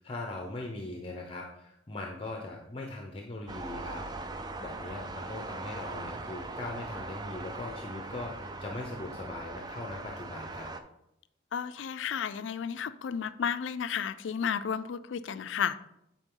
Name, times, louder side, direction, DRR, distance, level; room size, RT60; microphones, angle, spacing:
voice 1, 0.0-4.0 4.6-10.7, left 2 dB, 30° left, 1 dB, 0.7 m, -40 dB
sound 1, 3.5-10.8, right 2 dB, 20° right, 0.4 m, -40 dB
voice 2, 11.5-15.8, left 7 dB, 75° left, 13 dB, 0.4 m, -32 dB
8.9 x 4.4 x 3.8 m, 0.82 s
head